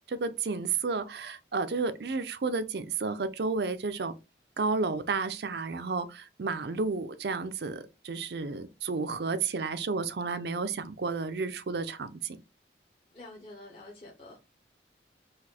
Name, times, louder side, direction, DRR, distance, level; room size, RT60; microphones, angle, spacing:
voice 1, 0.1-4.1 4.6-12.4, right 4 dB, 65° right, 0.5 m, -32 dB
voice 2, 13.1-14.4, left 2 dB, 30° left, 0.8 m, -47 dB
4.1 x 2.6 x 4.2 m
head